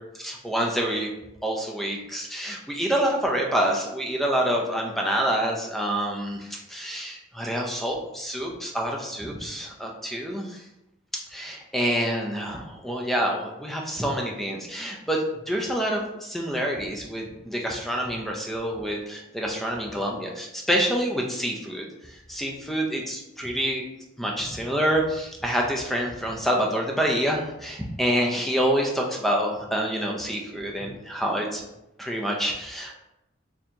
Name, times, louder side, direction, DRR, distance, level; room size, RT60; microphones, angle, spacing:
voice 1, 0.1-1.1 1.4-10.6 11.3-23.8 24.2-31.6 32.0-32.9, equal, ahead, 0 dB, 0.4 m, -27 dB
4.2 x 2.8 x 2.7 m, 0.91 s
head